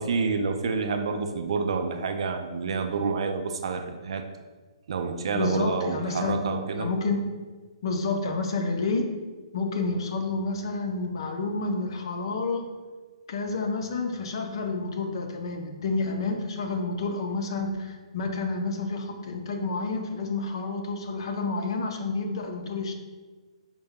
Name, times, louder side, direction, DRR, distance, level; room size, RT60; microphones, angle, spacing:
voice 1, 0.0-4.2 4.9-6.9, right 4 dB, 60° right, 6 dB, 0.4 m, -28 dB
voice 2, 5.3-6.5 6.8-7.4 7.8-9.1 9.5-12.7 13.3-23.0, left 3 dB, 50° left, 5 dB, 0.4 m, -29 dB
4.7 x 2.1 x 3.5 m, 1.4 s
hypercardioid pair, 165°, 3 cm